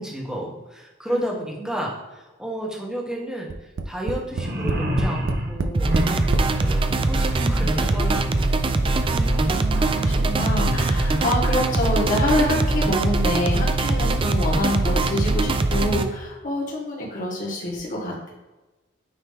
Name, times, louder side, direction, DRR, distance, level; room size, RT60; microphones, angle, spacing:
voice 1, 0.0-6.0 6.6-8.3, equal, 5° right, -2 dB, 1.3 m, -32 dB
Tap, 3.5-6.5 7.3-7.4 7.7-7.8, right 3 dB, 85° right, 0.5 m, -26 dB
sound 1, 4.3-11.1, equal, 55° right, 1.2 m, -29 dB
sound 2, 5.7-16.0, right 2 dB, 30° right, 0.4 m, -22 dB
voice 2, 9.0-18.3, left 1 dB, 45° left, -4 dB, 2.0 m, -26 dB
9.3 x 3.1 x 3.5 m, 1.1 s
head